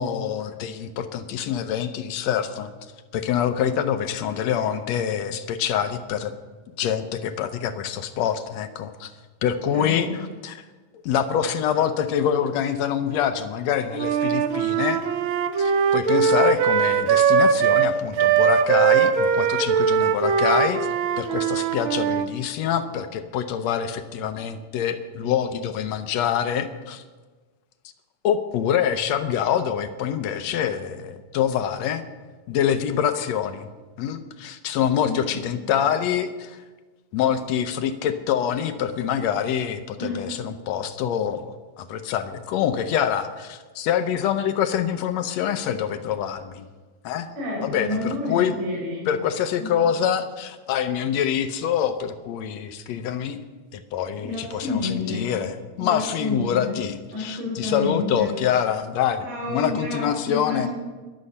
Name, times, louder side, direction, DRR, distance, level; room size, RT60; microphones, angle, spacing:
voice 1, 0.0-2.7 3.1-6.3 6.8-9.1 9.4-10.6 11.0-15.0 15.6-20.9 21.2-27.0 28.2-32.0 32.5-33.7 34.0-36.6 37.1-46.7 47.0-47.3 47.6-48.5 49.1-53.4 53.7-60.7, left 9 dB, 70° left, 10 dB, 1.9 m, -25 dB
voice 2, 9.7-10.2 35.0-35.6 40.0-40.3 47.4-49.1 49.6-49.7 54.2-55.3 55.8-56.8 57.1-58.3 59.3-60.7, left 2 dB, 60° right, -4 dB, 6.1 m, -29 dB
Wind instrument woodwind instrument, 13.9-22.3, right 7 dB, 85° right, 1.1 m, -21 dB
21.5 x 7.7 x 5.4 m, 1.3 s
omnidirectional pair, 3.4 m